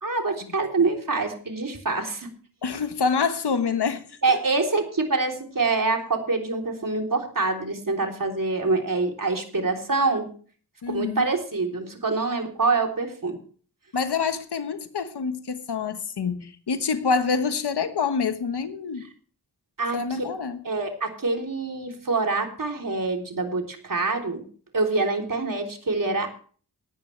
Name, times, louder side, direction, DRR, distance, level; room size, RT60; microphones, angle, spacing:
voice 1, 0.0-2.3 4.2-10.3 10.9-13.4 19.8-20.3 20.6-24.4 24.7-26.5, right 3 dB, 55° right, 2 dB, 3.5 m, -25 dB
voice 2, 2.6-4.4 10.8-11.3 13.9-19.1 19.9-20.6, left 5 dB, 80° left, 9 dB, 1.3 m, -26 dB
18.5 x 11.0 x 3.3 m, 0.42 s
cardioid pair, 50°, 40 cm